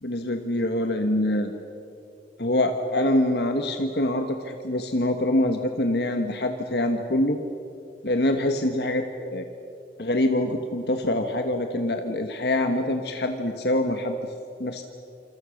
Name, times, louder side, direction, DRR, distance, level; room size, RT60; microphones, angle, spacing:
voice 1, 0.0-1.5 2.4-7.4 8.0-9.5 10.0-14.2 14.6-14.8, left 1 dB, 65° left, 5 dB, 1.4 m, -25 dB
27.5 x 27.0 x 6.5 m, 2.7 s
head